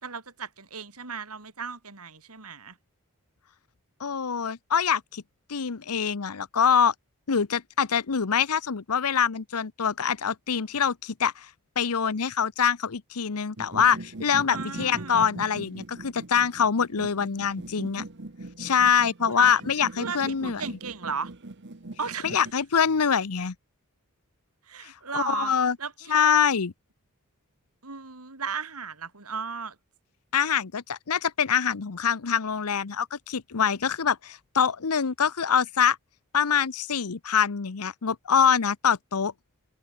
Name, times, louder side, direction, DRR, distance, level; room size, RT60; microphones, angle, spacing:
voice 1, 0.0-2.8 14.5-15.2 19.3-19.6 19.9-21.3 22.0-22.3 24.7-26.2 27.8-29.8, right 5 dB, 80° right, 4.0 m, -35 dB
voice 2, 4.0-5.2 5.5-6.9 7.3-11.5 11.8-18.1 18.6-20.6 22.2-23.5 24.8-25.8 26.1-26.7 30.3-36.0 36.3-39.3, left 7 dB, 85° left, 0.8 m, -24 dB
sound 1, 13.6-22.5, right 2 dB, 55° right, 1.3 m, -41 dB
head